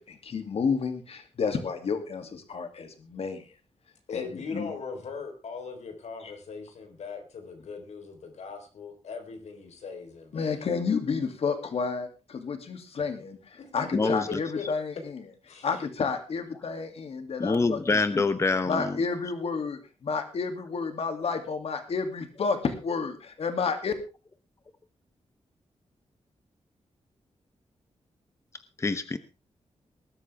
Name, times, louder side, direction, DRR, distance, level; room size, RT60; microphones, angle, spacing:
voice 1, 0.0-3.4 4.1-4.7 6.2-6.3 10.3-15.2 15.6-18.2 18.7-23.9, left 5 dB, 65° left, 7 dB, 2.6 m, -31 dB
voice 2, 4.1-10.6 14.0-14.7 15.5-15.7, left 5 dB, 90° left, 5 dB, 4.0 m, -39 dB
voice 3, 13.9-14.4 17.4-19.0 28.8-29.2, left 3 dB, 25° left, 11 dB, 0.9 m, -26 dB
19.5 x 13.0 x 3.5 m, 0.32 s
wide cardioid pair, 145°, 11 cm